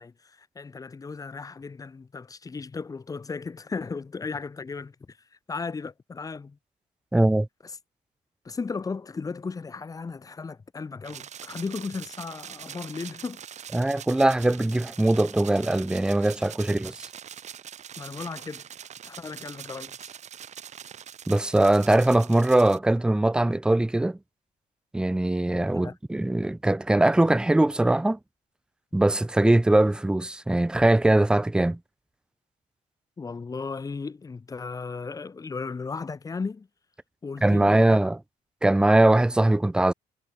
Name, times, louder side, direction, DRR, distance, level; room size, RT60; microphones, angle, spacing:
voice 1, 0.0-5.2 5.5-6.6 8.4-13.4 18.0-18.6 19.0-20.1 25.7-25.9 33.2-36.7 37.2-38.0, left 4 dB, 25° left, 1.2 m, -35 dB
voice 2, 7.1-7.5 13.7-17.1 21.3-24.2 24.9-28.2 28.9-31.8 37.4-38.2 38.6-39.9, right 1 dB, 5° right, 0.5 m, -21 dB
sound 1, 11.0-22.8, right 9 dB, 50° right, 1.9 m, -43 dB
cardioid pair, 115°, 15 cm